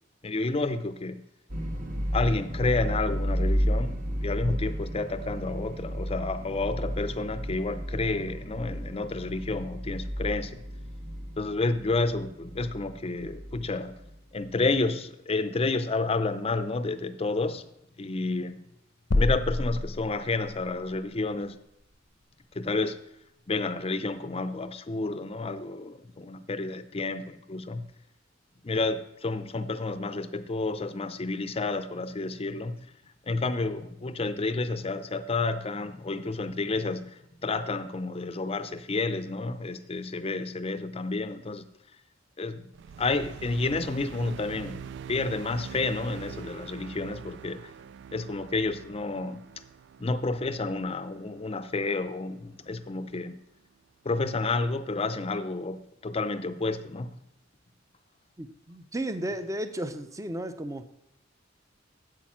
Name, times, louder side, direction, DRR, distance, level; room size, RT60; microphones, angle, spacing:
voice 1, 0.2-1.2 2.1-10.6 11.4-13.9 14.3-17.6 18.0-18.6 19.2-21.6 22.6-23.0 23.5-27.9 28.6-32.9 33.3-41.7 42.4-42.7 43.0-44.8 45.1-47.7 48.1-49.4 50.0-53.4 54.0-57.2, left 3 dB, 30° left, 0.5 m, -30 dB
sound 1, 1.5-14.4, equal, 45° right, 1.2 m, -32 dB
sound 2, 19.1-20.7, left 2 dB, 85° left, 0.8 m, -27 dB
sound 3, 42.7-53.2, right 7 dB, 65° right, 0.3 m, -45 dB
voice 2, 58.4-60.8, right 1 dB, 15° right, 0.6 m, -34 dB
8.6 x 8.0 x 6.2 m
head